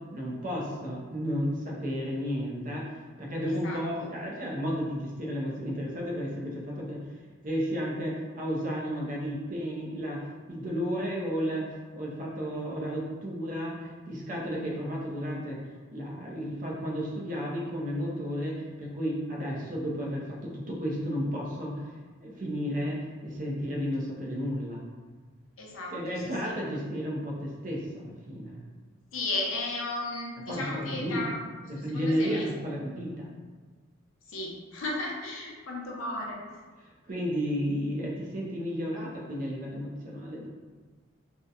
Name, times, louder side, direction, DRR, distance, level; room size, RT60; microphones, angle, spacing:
voice 1, 0.1-2.9 3.2-7.0 7.4-11.7 11.9-15.6 15.9-21.9 22.2-24.8 25.9-28.6 30.5-31.2 31.7-33.3 36.8-40.5, equal, 40° right, -3 dB, 0.5 m, -32 dB
voice 2, 3.5-4.1 25.6-26.5 29.1-31.4 31.8-32.5 34.3-36.4, left 2 dB, 85° left, -1 dB, 0.5 m, -35 dB
2.7 x 2.1 x 2.3 m, 1.4 s
head